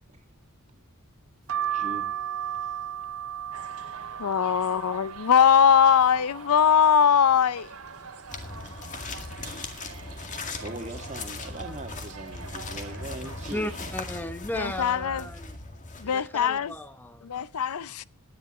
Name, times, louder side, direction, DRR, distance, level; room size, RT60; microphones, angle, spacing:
sound 1, 1.5-7.2 7.6-8.4 8.8-8.9 9.1-10.2 10.7-11.0 11.8-12.1 12.9-13.2 13.4-13.6, right 10 dB, 60° right, 0.6 m, -36 dB
voice 1, 1.7-2.0 2.6-2.7 3.7-3.8 10.6-13.9, right 1 dB, 30° right, 2.0 m, -40 dB
sound 2, 3.5-14.0, right 5 dB, 90° right, 2.8 m, -45 dB
voice 2, 4.2-7.7 14.5-15.3 16.0-16.7 17.2-18.0, left 7 dB, 80° left, 0.5 m, -21 dB
sound 3, 8.3-16.4, left 3 dB, 35° left, 2.1 m, -39 dB
voice 3, 13.5-15.6 16.0-17.3, left 1 dB, 10° left, 0.8 m, -35 dB
17.5 x 11.0 x 3.1 m
head